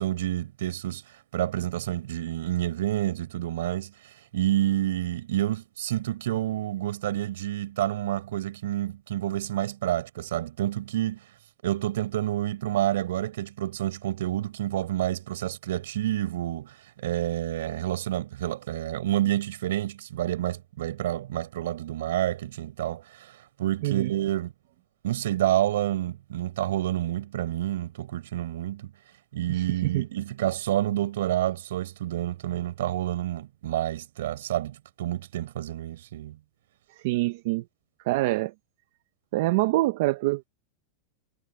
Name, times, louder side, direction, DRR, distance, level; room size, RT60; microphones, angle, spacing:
voice 1, 0.0-11.2 11.6-24.5 25.0-28.9 29.3-36.4, right 13 dB, 80° right, 6.0 m, -29 dB
voice 2, 29.5-30.0 37.0-37.6 38.1-38.5 39.3-40.4, right 18 dB, 55° right, 0.7 m, -25 dB
supercardioid pair, 160°, 0 cm